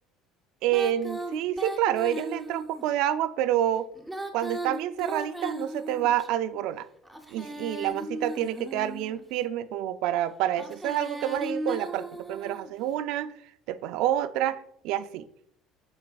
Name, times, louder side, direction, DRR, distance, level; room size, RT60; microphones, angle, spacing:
voice 1, 0.6-3.9 4.3-6.9 7.3-13.3 13.7-15.2, right 11 dB, 65° right, 0.3 m, -28 dB
Female singing, 0.7-2.8 4.0-6.3 7.1-9.2 10.5-12.7, right 1 dB, ahead, 0.6 m, -36 dB
12.5 x 4.2 x 2.3 m
cardioid pair, 155°, 0 cm